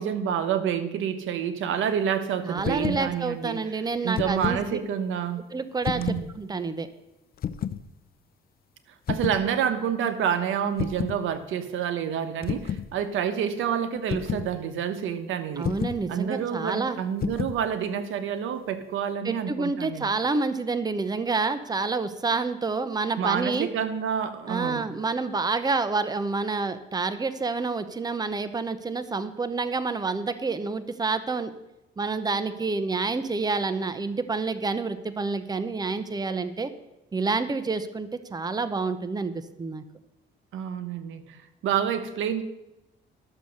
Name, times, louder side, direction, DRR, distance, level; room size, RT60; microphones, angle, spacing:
voice 1, 0.0-3.6 4.0-5.4 5.9-6.3 9.1-15.7 16.1-20.1 23.2-24.9 40.5-41.4 41.6-42.4, right 8 dB, 85° right, 10 dB, 1.0 m, -28 dB
voice 2, 2.4-4.6 5.5-6.9 15.6-17.0 19.2-23.7 24.5-31.5 32.0-36.7 37.1-39.3 39.6-39.8, right 4 dB, 20° right, 12 dB, 0.8 m, -28 dB
sound 1, 2.6-3.1 3.9-4.7 5.8-6.3 7.4-7.8 9.1-9.4 10.8-11.2 12.4-12.9 14.1-14.5 15.6-16.0 17.2-17.6, left 9 dB, 50° left, 0.6 m, -30 dB
12.0 x 6.9 x 6.4 m, 0.95 s
cardioid pair, 90°, 20 cm